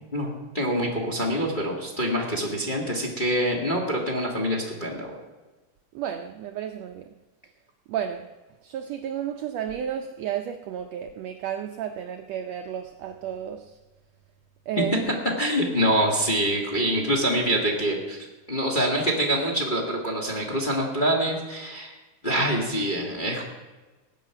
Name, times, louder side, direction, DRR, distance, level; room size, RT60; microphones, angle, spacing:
voice 1, 0.1-5.2 15.4-21.9 22.2-23.4, equal, 20° left, 1.4 m, -25 dB
voice 2, 5.9-7.1 7.9-8.3 8.6-13.8 14.7-15.1, right 9 dB, 90° right, 1.4 m, -32 dB
19.0 x 8.3 x 5.8 m
omnidirectional pair, 3.8 m